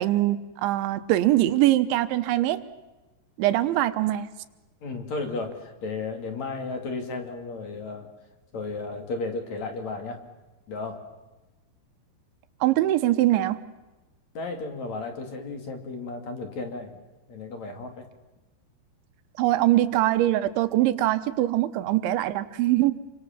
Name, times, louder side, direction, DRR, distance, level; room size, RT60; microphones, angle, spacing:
voice 1, 0.0-2.6 3.4-4.3 12.6-13.6 19.4-22.9, right 15 dB, 80° right, 11 dB, 3.4 m, -22 dB
voice 2, 4.8-8.1 8.5-10.2 10.7-11.0 14.3-17.0 17.3-18.1, left 3 dB, 45° left, 6 dB, 3.4 m, -34 dB
28.0 x 25.0 x 7.3 m, 1.1 s
omnidirectional pair, 5.4 m